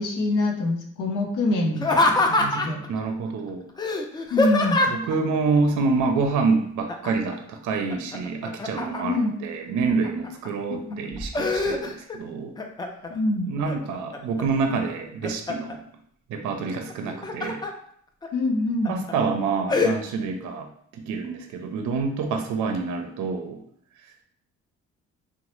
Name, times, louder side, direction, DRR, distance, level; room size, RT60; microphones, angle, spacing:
voice 1, 0.0-2.8 4.3-4.8 9.0-9.3 10.7-11.0 13.1-13.5 18.3-18.9, left 2 dB, 90° left, 1 dB, 0.7 m, -25 dB
Laughter, 1.7-2.9 3.8-5.1 6.9-7.3 7.7-9.3 9.8-10.5 10.9-12.2 12.6-13.1 13.6-14.4 14.9-15.7 16.9-17.7 18.2-18.3 18.8-19.1 19.7-19.9, left 2 dB, 15° left, 0.3 m, -24 dB
voice 2, 2.9-3.7 4.9-12.5 13.5-15.8 16.3-17.6 18.9-23.6, right 4 dB, 75° right, 5 dB, 0.5 m, -27 dB
2.9 x 2.0 x 3.0 m, 0.66 s
cardioid pair, 90°, 30 cm